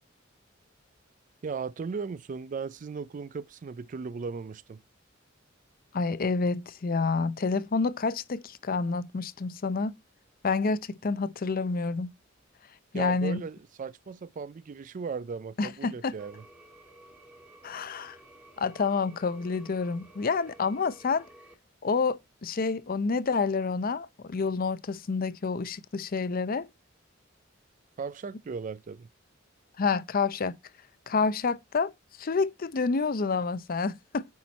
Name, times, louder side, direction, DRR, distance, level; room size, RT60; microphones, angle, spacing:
voice 1, 1.4-4.8 12.9-16.4 28.0-29.1, right 5 dB, 40° right, 0.3 m, -37 dB
voice 2, 5.9-9.9 10.4-12.1 12.9-13.4 15.6-16.1 17.6-18.2 18.6-21.2 21.8-26.7 29.8-30.6 31.1-31.9 32.2-34.3, left 4 dB, 45° left, 0.5 m, -28 dB
sound 1, 16.2-21.5, right 1 dB, 5° right, 1.5 m, -54 dB
9.4 x 4.4 x 4.3 m
head